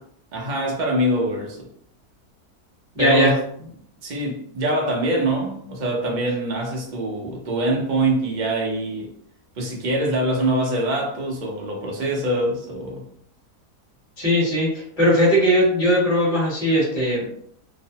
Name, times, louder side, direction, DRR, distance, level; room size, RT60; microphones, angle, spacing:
voice 1, 0.3-1.7 3.0-3.4 4.0-9.1 9.6-13.1, right 1 dB, 50° right, -1 dB, 0.5 m, -24 dB
voice 2, 2.9-3.4 14.2-14.7 15.0-17.3, equal, 25° left, -7 dB, 1.2 m, -19 dB
3.0 x 2.0 x 2.8 m, 0.65 s
omnidirectional pair, 1.7 m